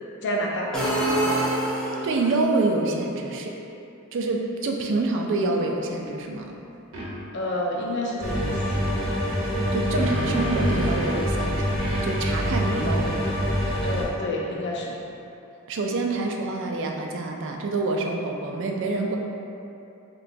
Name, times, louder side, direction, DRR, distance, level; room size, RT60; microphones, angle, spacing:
voice 1, 0.2-0.7 7.3-8.6 13.8-15.0, left 1 dB, 55° left, -2 dB, 0.5 m, -28 dB
sound 1, 0.7-2.3, right 1 dB, 5° left, 0.5 m, -25 dB
voice 2, 2.0-3.6 4.1-6.6 9.7-11.7 12.0-13.3 15.7-19.2, right 3 dB, 60° right, 2 dB, 0.3 m, -27 dB
sound 2, 6.9-7.1 9.5-11.3 11.8-15.1, equal, 90° right, 0.9 m, -34 dB
sound 3, 8.2-14.0, equal, 30° right, 0.9 m, -25 dB
3.3 x 3.0 x 2.5 m, 2.8 s
head